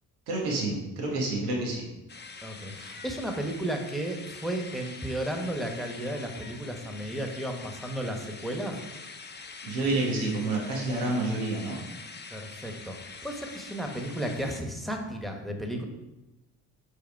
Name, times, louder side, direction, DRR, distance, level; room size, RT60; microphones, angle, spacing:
voice 1, 0.3-1.9 9.6-11.8, right 2 dB, 85° right, -2 dB, 1.5 m, -29 dB
sound 1, 2.1-14.6, left 4 dB, 25° left, 0.7 m, -45 dB
voice 2, 2.4-8.8 12.3-15.8, right 1 dB, ahead, 3 dB, 1.3 m, -34 dB
5.1 x 4.9 x 4.6 m, 0.99 s
hypercardioid pair, 50°, 44 cm